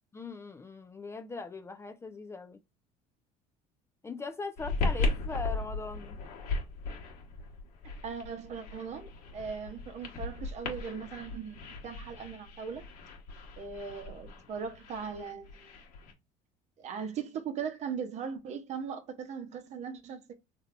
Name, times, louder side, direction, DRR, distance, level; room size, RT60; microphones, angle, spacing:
voice 1, 0.1-2.6 4.0-6.2, left 4 dB, 15° left, 0.3 m, -40 dB
sound 1, 4.6-16.1, left 3 dB, 70° left, 1.2 m, -37 dB
voice 2, 8.0-12.9 13.5-15.7 16.8-20.3, right 6 dB, 45° right, 0.8 m, -39 dB
3.3 x 2.7 x 2.5 m
cardioid pair, 115°, 16 cm